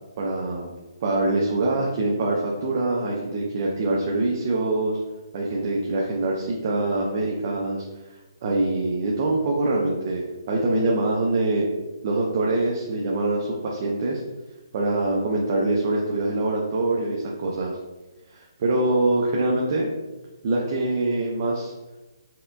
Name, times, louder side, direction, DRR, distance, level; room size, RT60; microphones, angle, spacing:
voice 1, 0.2-0.7 1.0-5.0 5.3-11.7 12.0-14.2 14.7-17.8 18.3-19.9 20.4-21.7, right 2 dB, 30° right, -3 dB, 0.5 m, -24 dB
4.2 x 3.4 x 2.6 m, 1.1 s
hypercardioid pair, 165°, 3 cm